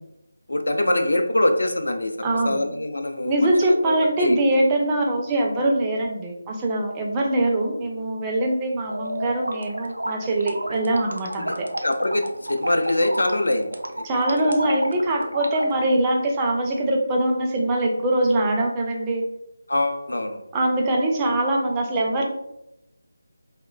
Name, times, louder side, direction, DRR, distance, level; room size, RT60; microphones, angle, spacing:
voice 1, 0.5-4.4 11.4-14.0 14.4-14.5 19.7-20.4, left 1 dB, 75° left, 5 dB, 0.3 m, -24 dB
voice 2, 2.2-2.6 3.3-11.7 14.0-19.3 20.5-22.3, right 1 dB, 15° right, 0 dB, 0.3 m, -23 dB
sound 1, 8.8-15.8, right 1 dB, 90° right, 0.4 m, -32 dB
3.0 x 2.1 x 2.2 m, 0.84 s
figure-of-eight pair, 160°, 0 cm